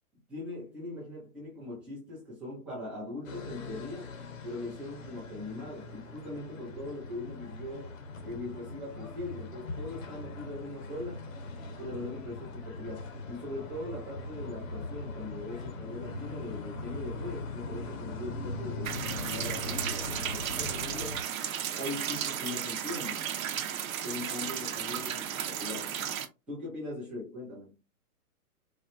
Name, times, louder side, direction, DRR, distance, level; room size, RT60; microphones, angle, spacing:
voice 1, 0.3-4.1 4.4-11.2 11.8-21.2 21.7-23.3 24.0-26.0 26.5-27.8, left 2 dB, ahead, 0.5 m, -40 dB
sound 1, 3.2-21.2, left 3 dB, 60° left, 1.2 m, -40 dB
sound 2, 18.8-26.3, right 9 dB, 65° right, 0.8 m, -34 dB
4.4 x 2.1 x 2.5 m
hypercardioid pair, 160°, 45 cm